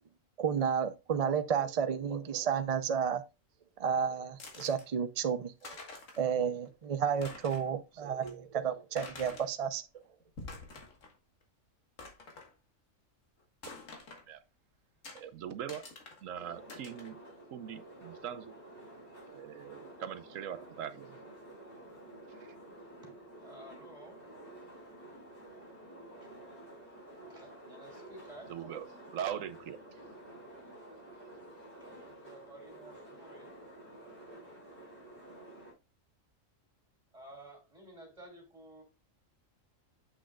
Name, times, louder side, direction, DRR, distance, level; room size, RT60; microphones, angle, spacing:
voice 1, 0.4-3.2 3.8-5.7 6.2-9.8, right 7 dB, 45° right, 0.5 m, -31 dB
sound 1, 4.4-4.8 5.3-5.4 5.6-6.3 6.7-6.8 7.1-7.7 8.2-8.3 9.0-9.5 10.2-11.2 11.4-11.5 12.0-12.5 13.6-14.3 15.0-15.2 15.7-16.2 16.7-17.1, left 3 dB, 75° left, 1.9 m, -47 dB
voice 2, 15.1-15.8 16.2-17.2 17.5-18.5 19.3-21.2 22.3-22.5 28.5-29.8, right 9 dB, 80° right, 1.1 m, -41 dB
sound 2, 16.3-35.7, right 1 dB, 55° left, 4.2 m, -51 dB
voice 3, 23.0-24.2 27.3-28.5 32.0-33.5 34.4-34.8 37.1-38.8, right 1 dB, 25° right, 2.9 m, -53 dB
7.7 x 6.2 x 2.3 m
omnidirectional pair, 1.3 m